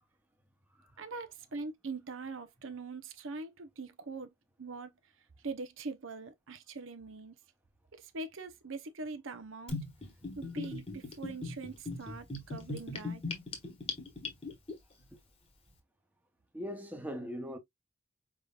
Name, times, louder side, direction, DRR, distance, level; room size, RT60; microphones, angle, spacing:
voice 1, 1.0-4.3 4.6-4.9 5.4-7.4 7.9-9.8 10.4-13.2, right 3 dB, 70° right, 0.8 m, -42 dB
Gurgling / Bathtub (filling or washing), 9.7-14.7, left 3 dB, 30° left, 1.2 m, -39 dB
voice 2, 16.5-17.6, equal, 10° right, 0.8 m, -40 dB
4.9 x 3.7 x 2.4 m
head